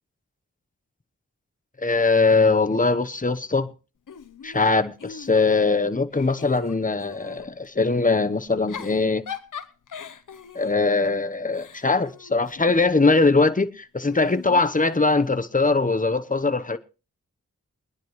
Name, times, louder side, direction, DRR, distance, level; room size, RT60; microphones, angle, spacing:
voice 1, 1.8-3.7 4.4-9.2 10.5-16.8, left 3 dB, 25° left, 1.1 m, -21 dB
Giggle / Chuckle chortle, 4.1-5.7 6.1-7.5 8.5-13.0 14.0-15.4, left 7 dB, 80° left, 1.0 m, -41 dB
23.5 x 10.5 x 3.2 m
cardioid pair, 60°, 31 cm